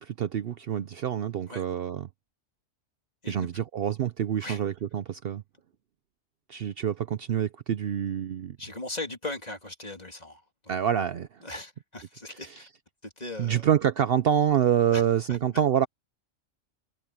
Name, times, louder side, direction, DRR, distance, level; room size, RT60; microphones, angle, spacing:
voice 1, 0.0-2.1 3.3-5.4 6.5-8.6 10.7-11.3 13.4-15.9, right 9 dB, 60° right, 0.8 m, -26 dB
voice 2, 3.2-3.6 4.4-4.6 8.6-10.4 10.8-10.9 11.4-12.7 13.0-13.6 14.9-15.4, left 2 dB, 35° left, 3.1 m, -39 dB
omnidirectional pair, 1.2 m